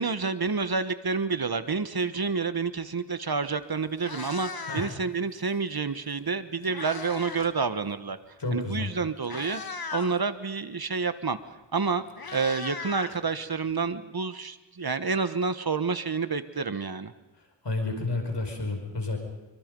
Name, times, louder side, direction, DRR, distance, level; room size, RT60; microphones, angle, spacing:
voice 1, 0.0-8.2 8.5-9.6 9.9-11.4 11.7-12.0 12.3-17.1, right 4 dB, 55° right, 11 dB, 1.3 m, -29 dB
Meow, 3.4-3.5 3.9-5.2 6.2-7.6 7.8-8.1 8.8-8.9 9.2-10.2 11.5-11.6 11.8-13.7, left 4 dB, 55° left, 1.6 m, -38 dB
voice 2, 8.4-8.9 17.4-19.2, left 2 dB, 70° left, 3 dB, 5.3 m, -31 dB
26.0 x 24.5 x 5.4 m, 1.1 s
wide cardioid pair, 70°, 43 cm